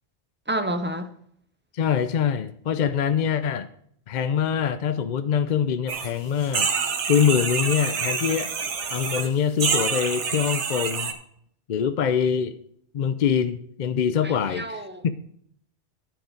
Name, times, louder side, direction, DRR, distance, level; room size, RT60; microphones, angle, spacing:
voice 1, 0.5-1.1 14.2-15.0, right 1 dB, 15° right, 0.5 m, -29 dB
voice 2, 1.7-3.7 4.1-6.7 7.1-8.5 8.9-11.1 11.7-12.6 12.9-15.1, left 7 dB, 55° left, 0.5 m, -24 dB
sound 1, 5.9-6.1 6.4-9.3 9.6-11.1, right 5 dB, 80° right, 1.3 m, -27 dB
12.5 x 5.0 x 5.1 m
omnidirectional pair, 1.2 m